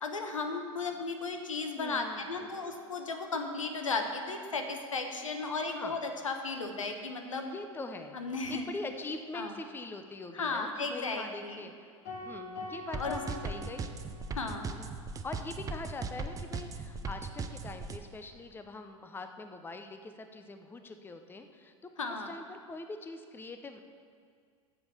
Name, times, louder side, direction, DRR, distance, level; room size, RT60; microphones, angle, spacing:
voice 1, 0.0-7.5 8.1-8.6 9.3-9.5 10.3-11.6 13.0-13.2 14.3-14.7 22.0-22.3, left 3 dB, 80° left, 5 dB, 1.1 m, -35 dB
voice 2, 1.8-2.6 5.6-6.0 7.5-8.2 8.5-11.9 12.2-13.9 14.7-14.9 15.2-23.8, left 3 dB, 15° left, 7 dB, 0.7 m, -43 dB
sound 1, 12.0-14.5, left 1 dB, 55° left, 3.0 m, -43 dB
sound 2, 12.9-18.0, right 4 dB, 20° right, 0.7 m, -37 dB
7.9 x 7.2 x 7.3 m, 2.2 s
figure-of-eight pair, 80°, 16 cm